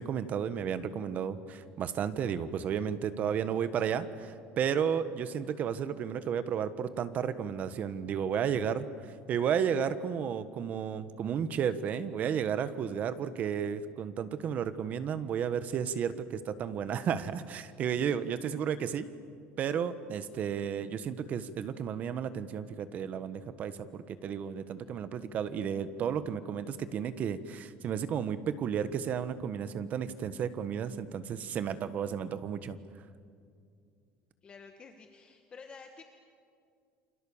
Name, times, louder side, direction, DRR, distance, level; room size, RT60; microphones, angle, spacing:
voice 1, 0.0-8.9 9.3-19.1 19.6-32.8, right 8 dB, 40° right, 12 dB, 1.2 m, -33 dB
voice 2, 34.4-36.0, left 5 dB, 25° left, 5 dB, 1.4 m, -50 dB
29.0 x 27.0 x 7.2 m, 2.2 s
cardioid pair, 160°, 4 cm